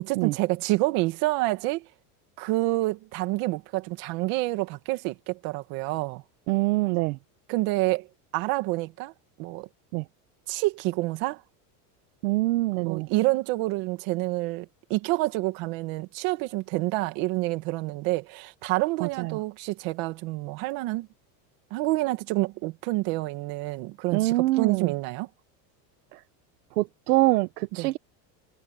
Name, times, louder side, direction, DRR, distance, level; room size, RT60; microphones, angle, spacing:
voice 1, 0.0-1.9 2.4-6.2 7.5-8.1 8.3-9.1 9.4-9.7 10.5-11.4 12.8-21.1 21.7-25.3 27.8-27.9, right 20 dB, 45° right, 2.2 m, -28 dB
voice 2, 6.5-7.2 9.9-10.0 12.2-13.1 19.0-19.3 24.1-24.9 26.8-28.0, right 20 dB, 70° right, 1.3 m, -24 dB
cardioid pair, 180°, 47 cm